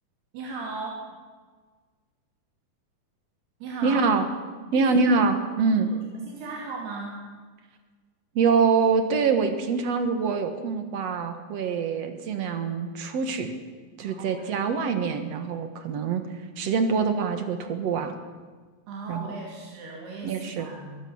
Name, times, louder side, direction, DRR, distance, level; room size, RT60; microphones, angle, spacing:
voice 1, 0.3-1.2 3.6-4.1 4.7-5.0 5.7-5.8 6.1-7.2 14.0-14.7 18.9-21.0, right 3 dB, 90° right, -1 dB, 4.6 m, -37 dB
voice 2, 3.8-4.2 4.7-5.9 8.4-13.5 14.0-16.2 16.6-18.1 19.1-19.2 20.2-20.7, right 5 dB, 55° right, 8 dB, 2.0 m, -24 dB
22.5 x 16.5 x 7.1 m, 1.4 s
omnidirectional pair, 4.5 m